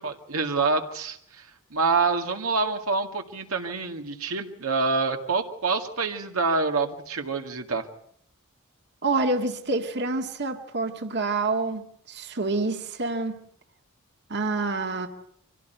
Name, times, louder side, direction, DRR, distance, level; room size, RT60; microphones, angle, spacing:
voice 1, 0.0-7.9, right 4 dB, 80° right, 2.1 m, -27 dB
voice 2, 9.0-13.3 14.3-15.1, right 3 dB, 55° right, 2.0 m, -27 dB
25.0 x 17.0 x 9.2 m
head